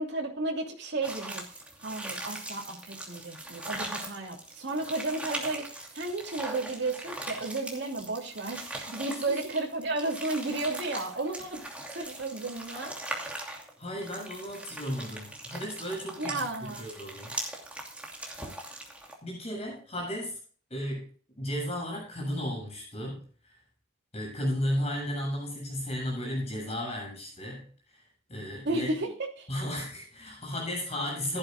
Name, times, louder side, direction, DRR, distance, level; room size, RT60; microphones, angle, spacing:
voice 1, 0.0-1.4 1.8-11.6 11.9-12.9 16.2-16.9 28.6-29.5, right 2 dB, 55° right, -1 dB, 2.9 m, -33 dB
sound 1, 1.0-19.1, right 1 dB, 5° right, 2.7 m, -40 dB
voice 2, 9.1-9.4 13.4-13.5 13.8-17.3 19.2-20.4 20.7-21.1 21.4-23.6 24.1-28.0 28.3-28.9 29.5-31.4, equal, 30° left, -1 dB, 7.5 m, -34 dB
17.0 x 12.0 x 2.4 m, 0.42 s
head